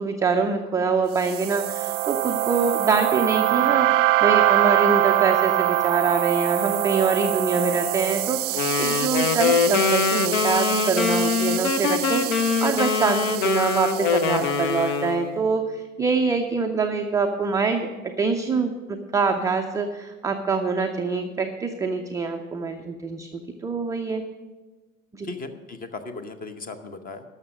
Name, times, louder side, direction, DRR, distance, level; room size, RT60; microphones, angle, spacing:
voice 1, 0.0-17.9 18.2-24.2 25.1-25.3, right 4 dB, 10° right, 3 dB, 0.4 m, -25 dB
sound 1, 1.2-14.6, right 15 dB, 60° right, 0.5 m, -24 dB
sound 2, 8.5-15.4, left 6 dB, 55° left, 0.9 m, -23 dB
voice 2, 25.2-27.2, left 3 dB, 20° left, 10 dB, 0.9 m, -37 dB
12.5 x 6.5 x 6.1 m, 1.2 s
figure-of-eight pair, 80°, 42 cm